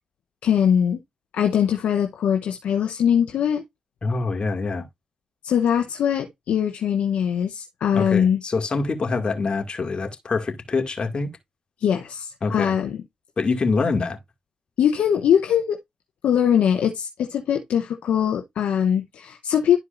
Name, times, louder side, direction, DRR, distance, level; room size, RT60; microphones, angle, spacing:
voice 1, 0.4-1.0 1.3-3.6 5.4-8.4 11.8-13.0 14.8-15.8 16.2-19.8, left 8 dB, 75° left, 0.8 m, -21 dB
voice 2, 4.0-4.9 7.9-11.3 12.4-12.8 13.4-14.2, left 4 dB, 45° left, 2.1 m, -25 dB
12.0 x 4.6 x 2.5 m
supercardioid pair, 45°, 2 cm